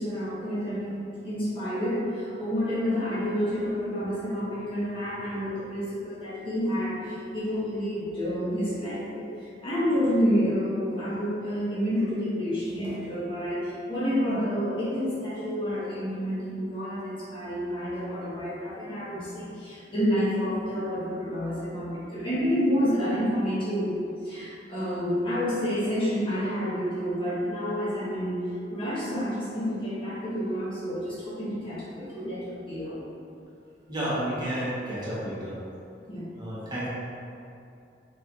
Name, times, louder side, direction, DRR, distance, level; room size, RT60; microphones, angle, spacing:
voice 1, 0.0-24.0 24.2-28.4 28.7-33.0 36.0-36.3, equal, 30° left, -9 dB, 1.1 m, -29 dB
voice 2, 33.9-35.6 36.4-36.9, right 1 dB, 25° right, -10 dB, 1.0 m, -31 dB
3.7 x 3.2 x 2.9 m, 2.6 s
head